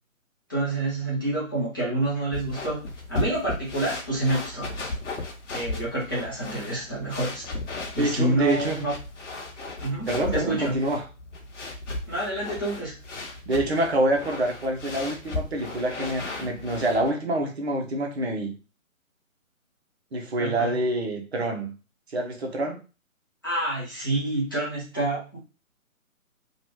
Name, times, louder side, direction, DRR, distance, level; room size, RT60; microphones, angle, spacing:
voice 1, 0.5-4.8 5.5-7.5 7.9-8.9 9.8-10.8 12.1-12.9 20.4-20.8 23.4-25.4, right 1 dB, 15° left, 0.5 m, -28 dB
sound 1, 2.3-17.1, left 2 dB, 60° left, 1.0 m, -36 dB
voice 2, 8.0-8.8 10.1-11.1 13.5-18.5 20.1-21.7 22.1-22.8, right 1 dB, 50° right, 0.8 m, -26 dB
2.9 x 2.3 x 3.0 m
figure-of-eight pair, 150°, 42 cm